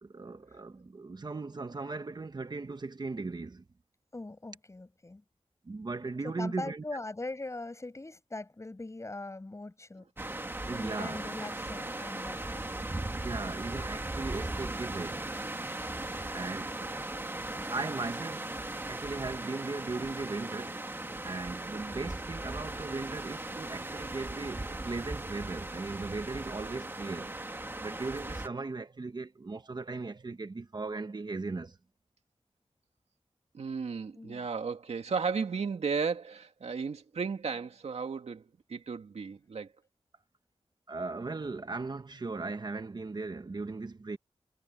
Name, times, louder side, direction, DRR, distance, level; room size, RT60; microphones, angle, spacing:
voice 1, 0.0-3.6 5.6-6.8 10.7-11.2 13.1-15.4 16.3-16.8 17.7-18.6 18.9-20.8 21.2-27.3 27.8-31.8 40.9-44.2, right 3 dB, 40° right, 1.2 m, -38 dB
voice 2, 4.1-5.2 6.2-10.1 10.7-12.7 34.2-34.5, left 2 dB, 30° left, 7.1 m, -41 dB
sound 1, 10.2-28.5, right 2 dB, 20° right, 1.6 m, -38 dB
voice 3, 33.5-39.7, right 5 dB, 85° right, 2.3 m, -34 dB
wide cardioid pair, 120°, 11 cm